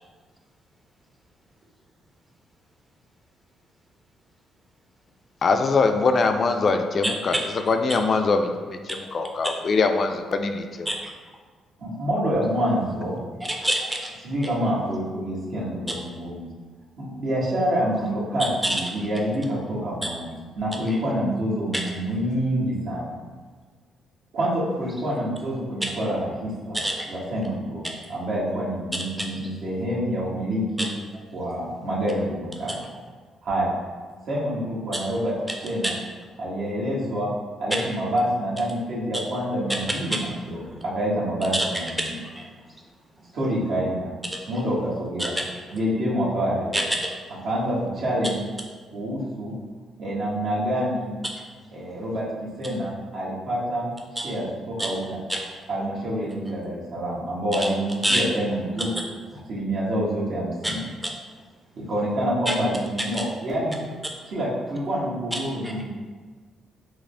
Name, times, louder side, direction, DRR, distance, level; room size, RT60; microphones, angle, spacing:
voice 1, 5.4-7.4 7.7-8.8 9.1-10.9, left 4 dB, 50° left, 6 dB, 0.3 m, -22 dB
voice 2, 7.0-7.4 8.9-9.0 9.4-9.6 10.9-11.1 13.5-14.1 18.4-18.8 20.0-20.1 20.9-21.0 21.7-21.8 25.8-25.9 26.7-27.1 29.2-29.3 30.8-30.9 40.1-40.2 40.6-40.8 41.5-41.7 42.3-42.5 44.3-44.4 45.2-45.4 46.7-47.2 54.2-54.3 54.8-54.9 55.3-55.4 57.5-57.7 58.0-58.2 60.6-60.7 61.0-61.1 62.5-62.6 65.3-65.7, right 1 dB, 5° right, 0 dB, 0.5 m, -26 dB
voice 3, 11.8-13.2 14.2-16.5 17.0-23.1 24.3-26.8 27.1-27.8 28.1-30.9 31.3-32.8 33.4-33.7 34.2-35.3 35.6-35.9 36.4-37.3 37.6-42.1 43.3-44.1 44.5-45.3 45.7-46.8 47.4-48.4 48.9-49.6 50.0-51.1 51.7-55.2 55.7-58.9 59.5-60.8 61.7-63.7 64.3-65.9, equal, 70° right, -7 dB, 1.3 m, -27 dB
4.9 x 2.0 x 3.3 m, 1.5 s
cardioid pair, 90°, 0 cm